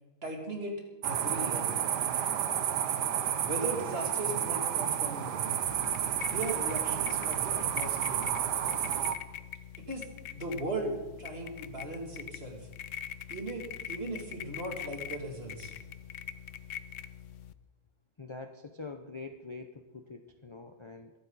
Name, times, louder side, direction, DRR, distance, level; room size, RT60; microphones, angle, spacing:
voice 1, 0.2-0.7 1.0-1.7 3.4-5.6 6.3-8.2 9.9-10.1 10.3-12.7 13.3-15.7, right 2 dB, 35° right, 0 dB, 3.0 m, -38 dB
sound 1, 1.0-9.1, right 9 dB, 85° right, 1.4 m, -31 dB
sound 2, 5.7-17.5, left 9 dB, 65° left, 0.8 m, -44 dB
voice 2, 18.2-21.1, left 3 dB, 40° left, 6 dB, 0.4 m, -44 dB
23.0 x 12.0 x 4.1 m, 1.1 s
omnidirectional pair, 1.7 m